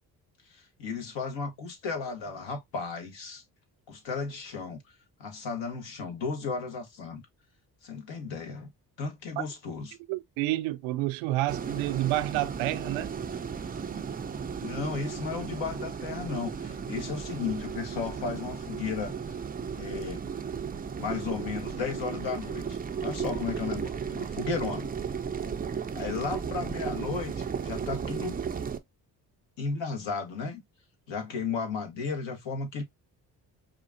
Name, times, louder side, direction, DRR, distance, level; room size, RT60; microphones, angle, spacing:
voice 1, 0.5-3.4 3.9-4.8 5.2-7.2 7.8-8.7 9.0-10.0 14.6-19.4 19.8-20.2 21.0-24.9 25.9-28.4 29.6-30.6 31.1-32.8, left 5 dB, 60° left, 1.4 m, -34 dB
voice 2, 10.1-13.2, right 17 dB, 70° right, 0.5 m, -29 dB
sound 1, 11.5-28.8, right 6 dB, 20° right, 0.4 m, -35 dB
5.0 x 2.5 x 2.6 m
hypercardioid pair, 50°, 49 cm